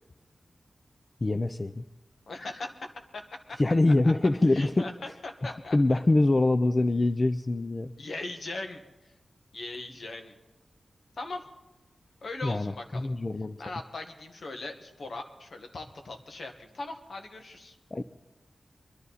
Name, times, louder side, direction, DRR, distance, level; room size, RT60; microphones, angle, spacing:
voice 1, 1.2-1.8 3.6-4.9 5.4-7.9 12.4-13.6 17.9-18.0, left 2 dB, 40° left, 10 dB, 0.6 m, -24 dB
voice 2, 2.3-2.9 3.1-3.2 4.5-4.9 5.2-6.0 8.0-8.8 9.5-10.4 11.2-11.4 12.2-13.1 13.6-17.8, left 2 dB, 75° left, 4 dB, 1.6 m, -39 dB
23.0 x 11.0 x 4.1 m, 1.1 s
cardioid pair, 55°, 0 cm